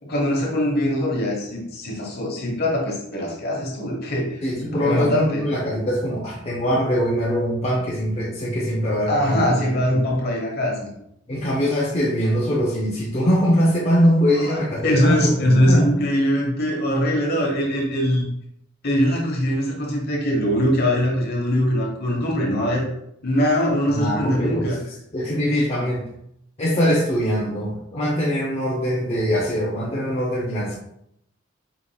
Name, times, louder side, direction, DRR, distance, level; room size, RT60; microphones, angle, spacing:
voice 1, 0.0-5.4 9.1-10.9 14.3-18.3 18.8-22.9 23.2-24.8, equal, 50° left, -1 dB, 1.2 m, -22 dB
voice 2, 4.4-10.0 11.3-16.0 23.9-24.7 25.1-26.1 26.6-30.7, equal, 30° left, -5 dB, 0.7 m, -22 dB
4.9 x 3.7 x 2.3 m, 0.77 s
head